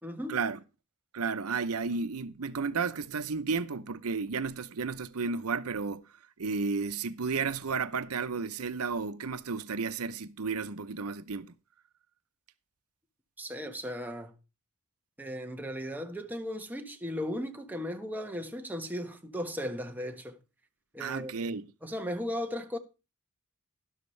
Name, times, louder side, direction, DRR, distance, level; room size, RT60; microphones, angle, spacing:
voice 1, 0.0-0.4 13.4-14.3 15.2-20.4 20.9-21.6 21.8-22.8, equal, 10° right, 1.3 m, -36 dB
voice 2, 1.1-11.5 21.0-21.7, right 4 dB, 85° right, 0.8 m, -33 dB
12.5 x 11.5 x 3.3 m
head